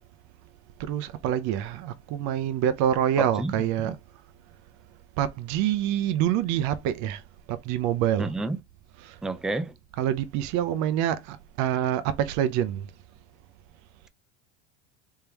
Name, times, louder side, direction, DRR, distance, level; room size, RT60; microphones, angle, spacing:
voice 1, 0.8-4.0 5.2-7.2 7.5-8.3 9.0-9.2 9.9-12.9, right 10 dB, 55° right, 0.6 m, -26 dB
voice 2, 3.2-3.5 3.8-3.9 8.2-8.6 9.2-9.7, right 2 dB, ahead, 0.3 m, -30 dB
3.6 x 3.3 x 2.9 m
supercardioid pair, 105°, 35 cm